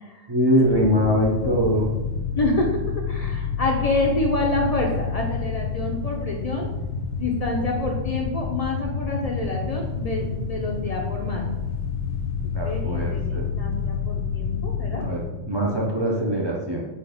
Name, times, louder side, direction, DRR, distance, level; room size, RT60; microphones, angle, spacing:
voice 1, 0.3-1.9 12.5-13.5 14.9-16.8, equal, 45° right, -3 dB, 0.3 m, -22 dB
sound 1, 0.6-15.8, left 6 dB, 70° left, 0.9 m, -29 dB
voice 2, 2.4-6.7 7.2-11.4 12.6-15.0, left 2 dB, 50° left, 0 dB, 0.4 m, -27 dB
4.5 x 2.3 x 4.8 m, 1.1 s
omnidirectional pair, 1.3 m